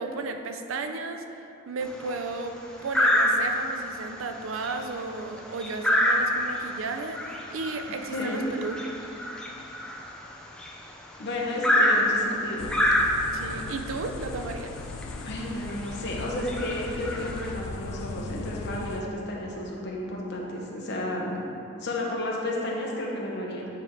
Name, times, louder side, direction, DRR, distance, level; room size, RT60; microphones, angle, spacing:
voice 1, 0.0-8.8 13.3-14.7, right 3 dB, 75° right, 6 dB, 0.5 m, -34 dB
sound 1, 1.8-2.2 2.9-3.7 4.2-4.4 4.6-10.9 11.6-13.5 14.5-14.6 15.0-15.1 15.7-15.9 16.4-17.5, left 1 dB, 5° left, 0.5 m, -26 dB
voice 2, 7.9-8.5 11.2-12.7 15.2-21.4 21.8-23.7, left 1 dB, 55° left, -3 dB, 1.1 m, -32 dB
sound 2, 12.6-19.0, left 4 dB, 80° left, 0.4 m, -38 dB
9.1 x 3.6 x 4.6 m, 2.9 s
head